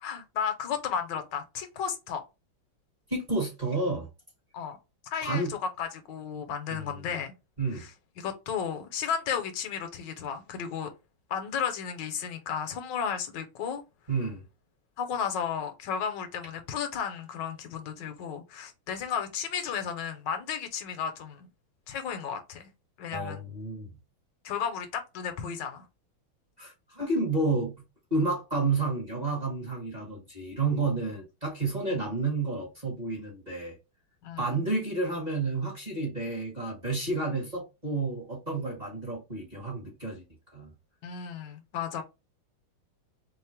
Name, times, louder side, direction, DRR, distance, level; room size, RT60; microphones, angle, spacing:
voice 1, 0.0-2.2 4.5-4.8 5.1-7.3 7.7-7.9 8.2-10.9 11.3-13.8 15.0-21.5 21.9-22.7 23.0-23.4 24.4-25.9 31.9-32.0 34.2-34.7 41.0-42.0, left 7 dB, 65° left, 1.3 m, -33 dB
voice 2, 3.1-4.1 5.2-5.5 6.7-7.1 7.6-7.8 14.1-14.4 23.1-23.9 26.6-27.7 28.1-33.8 34.4-40.2 40.5-40.7, right 3 dB, 25° right, 1.0 m, -30 dB
3.8 x 2.0 x 4.3 m
omnidirectional pair, 2.3 m